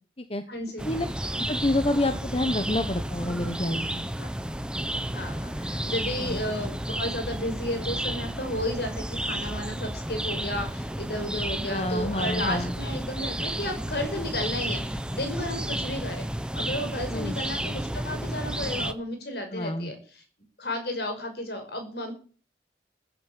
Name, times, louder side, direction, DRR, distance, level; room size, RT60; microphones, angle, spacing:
voice 1, 0.5-0.9 4.2-4.3 5.1-20.2 20.6-22.1, left 1 dB, 60° left, 5 dB, 5.8 m, -33 dB
sound 1, 0.8-18.9, right 1 dB, 5° right, 0.8 m, -32 dB
voice 2, 1.5-4.0 6.2-6.4 11.7-12.7 17.1-17.4 19.5-19.9, left 1 dB, 30° left, 9 dB, 1.1 m, -28 dB
15.5 x 9.2 x 8.2 m, 0.40 s
head